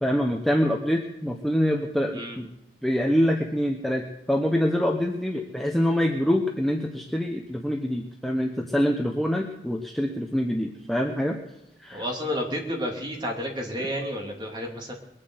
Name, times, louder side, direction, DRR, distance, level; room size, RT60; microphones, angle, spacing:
voice 1, 0.0-2.5 2.8-11.4 11.8-12.0, equal, ahead, 1 dB, 0.9 m, -25 dB
voice 2, 11.9-14.9, equal, 25° right, 0 dB, 2.8 m, -31 dB
21.5 x 7.7 x 8.0 m, 0.94 s
head